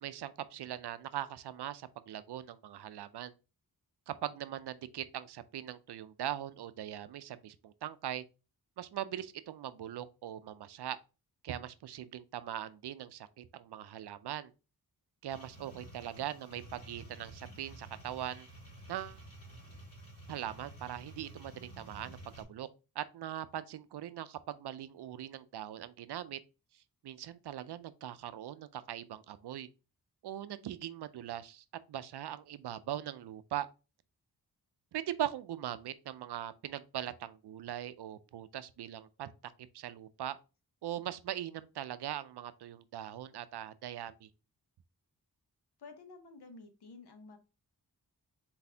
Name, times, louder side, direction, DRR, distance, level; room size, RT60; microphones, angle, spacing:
voice 1, 0.0-3.3 4.1-8.2 8.8-11.0 11.4-14.5 15.2-18.5 18.9-19.2 20.3-22.7 23.0-26.4 27.0-29.7 30.2-33.7 34.9-40.4 40.8-44.3, right 11 dB, 90° right, 0.5 m, -41 dB
sound 1, 15.3-22.4, right 1 dB, 35° left, 2.2 m, -51 dB
voice 2, 45.8-47.4, left 3 dB, 80° left, 1.0 m, -51 dB
4.1 x 4.1 x 2.7 m
wide cardioid pair, 120°, 39 cm